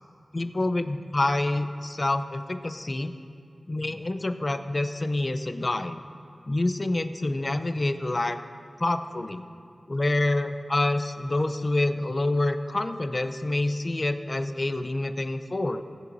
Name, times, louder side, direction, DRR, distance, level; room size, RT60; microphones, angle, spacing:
voice 1, 0.3-3.1 3.7-6.0 6.5-8.4 8.8-9.4 9.9-15.8, left 2 dB, 40° left, 9 dB, 0.6 m, -27 dB
18.0 x 7.7 x 2.7 m, 2.5 s
cardioid pair, 50°, 0 cm